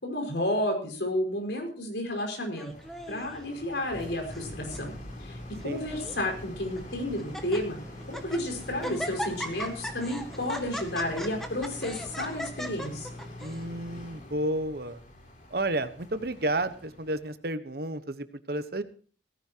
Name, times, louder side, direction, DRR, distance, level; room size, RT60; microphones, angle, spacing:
voice 1, 0.0-2.7 3.1-4.9 5.2-5.4 5.6-7.8 8.1-13.1, left 1 dB, 70° left, 3 dB, 5.3 m, -31 dB
Laughter, 2.6-3.4 4.1-4.5 4.7-4.8 5.6-6.2 6.8-6.9 7.2-7.6 8.0-8.4 8.8-13.6, equal, ahead, 1.7 m, -37 dB
sound 1, 2.7-17.3, left 1 dB, 45° left, 3.9 m, -45 dB
sound 2, 3.9-12.4, equal, 20° left, 3.3 m, -48 dB
voice 2, 13.4-15.0 15.5-18.8, right 1 dB, 55° right, 11 dB, 1.1 m, -31 dB
18.0 x 15.5 x 2.9 m, 0.42 s
head